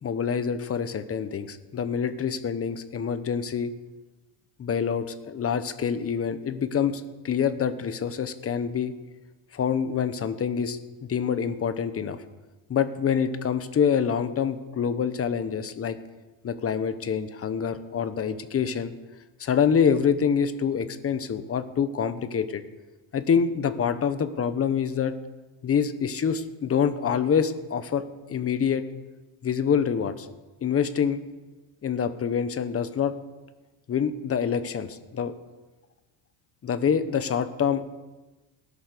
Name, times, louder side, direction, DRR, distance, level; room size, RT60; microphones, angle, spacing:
voice 1, 0.0-3.7 4.6-8.9 9.5-12.2 12.7-16.0 16.4-18.9 19.4-22.6 23.1-25.1 25.6-28.0 28.3-28.8 29.4-30.3 30.6-31.2 31.8-33.1 33.9-35.3 36.6-37.8, left 7 dB, 30° left, 11 dB, 1.1 m, -26 dB
17.5 x 11.0 x 6.8 m, 1.2 s
cardioid pair, 135°, 49 cm